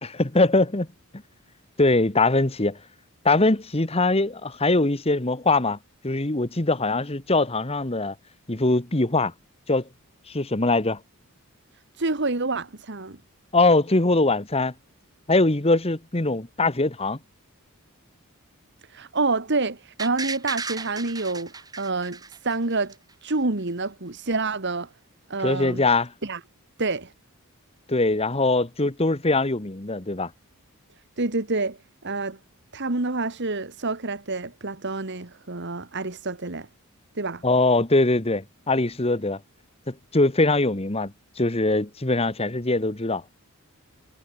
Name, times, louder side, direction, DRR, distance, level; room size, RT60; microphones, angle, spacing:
voice 1, 0.0-0.9 1.8-2.8 3.2-5.8 6.0-8.1 8.5-9.3 9.7-9.9 10.3-11.0 13.5-14.7 15.3-17.2 25.4-26.1 27.9-30.3 37.4-39.4 39.9-43.2, left 2 dB, 25° left, 1.5 m, -22 dB
voice 2, 11.9-13.2 18.9-23.0 23.2-24.9 25.3-25.9 26.2-26.4 26.8-27.1 31.2-32.4 32.7-36.7 37.2-37.4, right 3 dB, 50° right, 1.7 m, -28 dB
sound 1, 20.0-22.9 23.3-23.4, right 4 dB, 15° right, 1.6 m, -34 dB
head